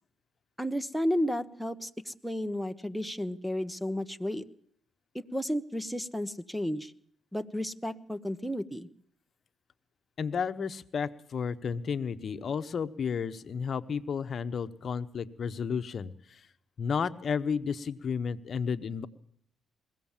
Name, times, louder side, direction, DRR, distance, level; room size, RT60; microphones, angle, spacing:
voice 1, 0.6-4.4 5.1-6.9 7.3-8.9, equal, ahead, 14 dB, 1.2 m, -32 dB
voice 2, 10.2-16.4 16.8-19.1, left 6 dB, 50° left, 10 dB, 1.1 m, -32 dB
22.5 x 16.5 x 7.4 m, 0.65 s
cardioid pair, 90°, 0 cm